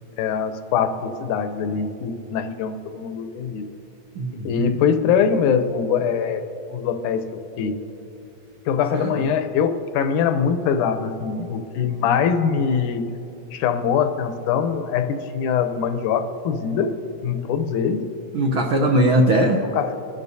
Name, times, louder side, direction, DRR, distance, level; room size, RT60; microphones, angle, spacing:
voice 1, 0.2-3.7 4.3-7.8 8.7-13.1 13.5-17.0 17.2-18.1 19.8-19.9, left 7 dB, 90° left, 8 dB, 2.3 m, -23 dB
voice 2, 4.1-4.8 8.9-9.2 18.3-19.6, right 1 dB, 85° right, 2 dB, 1.1 m, -20 dB
26.0 x 12.0 x 2.7 m, 3.0 s
omnidirectional pair, 3.5 m